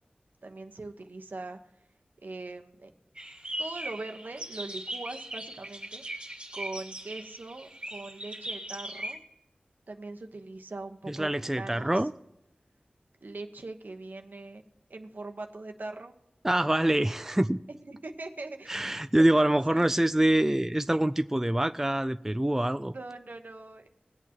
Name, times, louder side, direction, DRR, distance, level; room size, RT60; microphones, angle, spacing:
voice 1, 0.4-1.6 2.2-2.9 3.6-6.0 6.5-9.2 9.9-11.3 11.6-12.1 13.2-14.6 14.9-16.1 17.7-18.8 19.1-19.9 22.9-23.9, right 2 dB, 65° right, 5 dB, 1.1 m, -41 dB
sound 1, 3.2-9.2, right 1 dB, 30° right, 2.2 m, -39 dB
voice 2, 11.1-12.1 16.4-17.6 18.7-22.9, right 1 dB, 10° right, 11 dB, 0.3 m, -25 dB
21.0 x 8.6 x 3.0 m, 0.90 s
wide cardioid pair, 70°, 3 cm